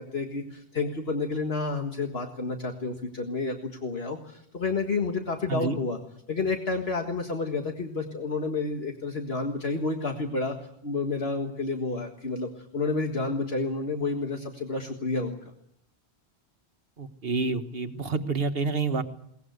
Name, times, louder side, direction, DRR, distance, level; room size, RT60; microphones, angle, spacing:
voice 1, 0.0-3.6 3.8-6.0 6.3-10.6 10.8-15.5, left 3 dB, 65° left, 3 dB, 2.0 m, -30 dB
voice 2, 17.0-19.0, right 4 dB, 60° right, 8 dB, 1.6 m, -28 dB
21.5 x 20.0 x 8.1 m, 0.75 s
omnidirectional pair, 1.1 m